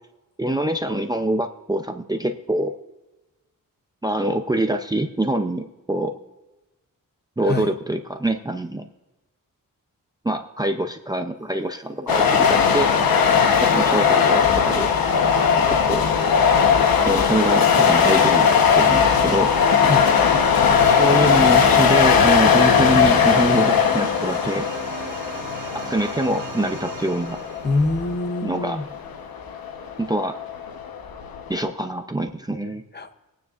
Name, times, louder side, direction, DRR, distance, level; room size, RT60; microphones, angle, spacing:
voice 1, 0.4-2.7 4.0-6.1 7.4-8.9 10.2-12.9 13.6-14.9 15.7-16.1 16.8-19.5 20.8-24.7 25.9-27.4 28.4-28.8 30.0-30.4 31.5-32.8, right 1 dB, 10° right, 6 dB, 0.5 m, -24 dB
voice 2, 7.4-7.7 19.9-20.1 27.6-28.9 32.9-33.1, left 2 dB, 30° left, 8 dB, 0.7 m, -24 dB
sound 1, 12.1-31.7, left 6 dB, 90° left, 1.0 m, -18 dB
sound 2, 15.0-28.4, right 6 dB, 65° right, 1.3 m, -39 dB
20.5 x 9.4 x 2.4 m, 1.1 s
wide cardioid pair, 165°, 34 cm